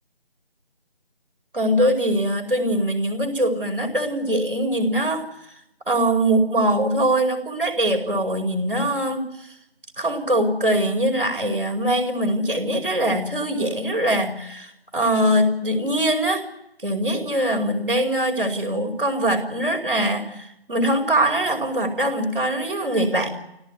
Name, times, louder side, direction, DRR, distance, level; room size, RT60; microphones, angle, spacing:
voice 1, 1.5-5.2 5.9-9.5 10.0-16.5 16.8-23.3, right 1 dB, 60° right, 5 dB, 5.0 m, -22 dB
28.5 x 17.5 x 9.6 m, 0.83 s
figure-of-eight pair, 165°, 31 cm